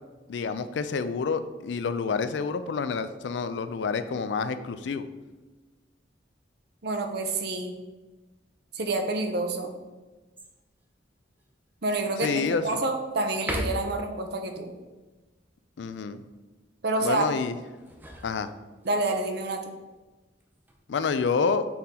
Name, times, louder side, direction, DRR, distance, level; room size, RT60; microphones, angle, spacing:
voice 1, 0.3-5.1 12.2-12.6 15.8-16.2 17.0-17.5 18.2-18.5 20.9-21.7, left 5 dB, 70° left, 11 dB, 0.4 m, -28 dB
voice 2, 6.8-7.8 8.7-9.7 11.8-14.7 16.8-17.3 18.8-19.7, right 2 dB, 60° right, 5 dB, 0.7 m, -28 dB
sound 1, 10.4-10.8 11.4-11.5 12.0-12.8 13.3-14.1 17.6-19.0 20.3-20.9, equal, 10° right, 0.6 m, -37 dB
5.8 x 3.8 x 4.2 m, 1.2 s
head